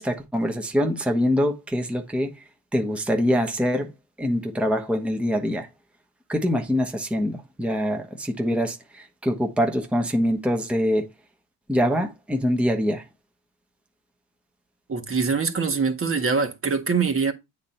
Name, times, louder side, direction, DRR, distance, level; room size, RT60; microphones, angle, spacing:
voice 1, 0.0-2.3 2.7-3.9 4.2-5.7 6.3-11.1 11.7-13.0, equal, 5° right, 1.1 m, -24 dB
voice 2, 14.9-17.3, right 5 dB, 30° right, 1.4 m, -23 dB
8.4 x 4.1 x 4.3 m
cardioid pair, 95°, 41 cm